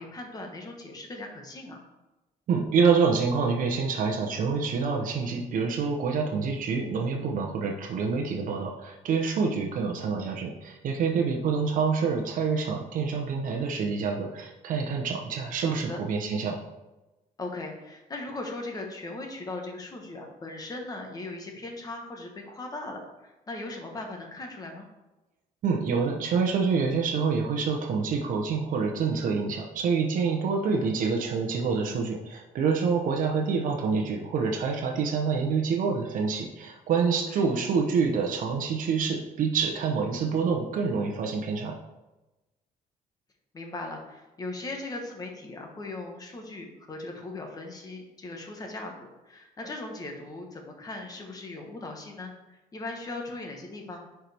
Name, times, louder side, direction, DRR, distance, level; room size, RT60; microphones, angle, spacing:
voice 1, 0.0-1.8 15.6-16.0 17.4-24.9 30.3-30.9 37.1-37.4 43.5-54.0, left 2 dB, 25° left, 2 dB, 1.2 m, -39 dB
voice 2, 2.5-16.6 25.6-41.7, right 5 dB, 65° right, 2 dB, 0.9 m, -27 dB
10.0 x 4.6 x 3.5 m, 1.0 s
cardioid pair, 160°, 15 cm